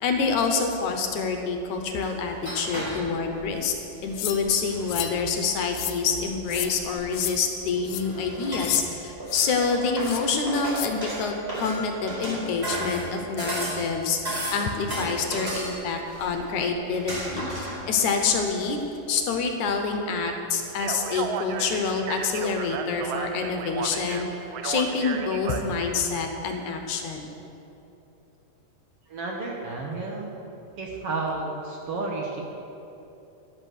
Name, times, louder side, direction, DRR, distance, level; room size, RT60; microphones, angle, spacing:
voice 1, 0.0-3.7 4.0-17.4 17.9-18.8 19.1-24.3 24.6-27.3, left 5 dB, 70° left, 4 dB, 2.2 m, -27 dB
sound 1, 0.7-0.8 1.8-3.7 4.1-5.2 6.1-7.4 7.8-8.9 9.2-13.9 14.2-16.6 16.9-18.0 18.4-18.5 18.8-18.9, right 1 dB, 15° right, 4.3 m, -34 dB
sound 2, 4.2-4.4 4.9-5.2 5.7-6.0 6.5-6.7 7.1-7.3 7.9-8.0 8.6-8.8 9.3-9.5 10.0-10.2 10.7-10.9, left 13 dB, 85° left, 2.3 m, -31 dB
Speech, 20.7-26.0, right 6 dB, 85° right, 1.4 m, -34 dB
voice 2, 29.1-30.3 30.8-32.4, right 3 dB, 55° right, -1 dB, 1.8 m, -31 dB
13.5 x 11.0 x 6.4 m, 3.0 s
omnidirectional pair, 3.8 m